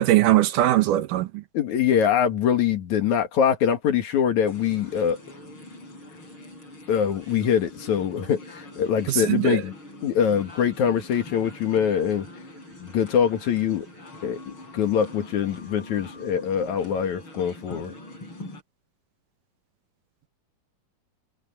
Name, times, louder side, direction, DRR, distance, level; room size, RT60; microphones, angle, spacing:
voice 1, 0.0-1.4 9.1-9.6, right 14 dB, 75° right, 2.3 m, -20 dB
voice 2, 1.5-5.2 6.9-9.7 10.0-12.3 12.8-13.9 14.2-17.9, left 8 dB, 60° left, 2.9 m, -23 dB
sound 1, 4.5-18.6, left 1 dB, 35° left, 8.6 m, -43 dB
omnidirectional pair, 4.1 m